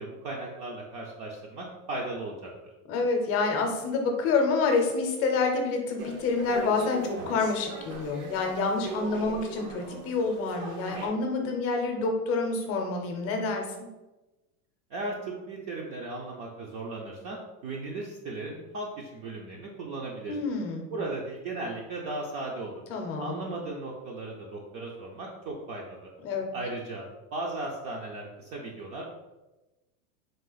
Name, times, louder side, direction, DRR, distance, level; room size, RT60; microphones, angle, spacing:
voice 1, 0.0-2.5 14.9-20.4 20.9-22.8 23.2-26.1 26.5-27.0 27.3-29.0, right 2 dB, 35° right, -2 dB, 0.5 m, -36 dB
voice 2, 2.9-13.6 20.3-20.8 22.9-23.4 26.2-26.5, left 4 dB, 30° left, 2 dB, 0.6 m, -28 dB
sound 1, 6.0-11.1, right 3 dB, 85° right, 1.2 m, -40 dB
3.8 x 2.4 x 3.9 m, 1.1 s
supercardioid pair, 140°, 44 cm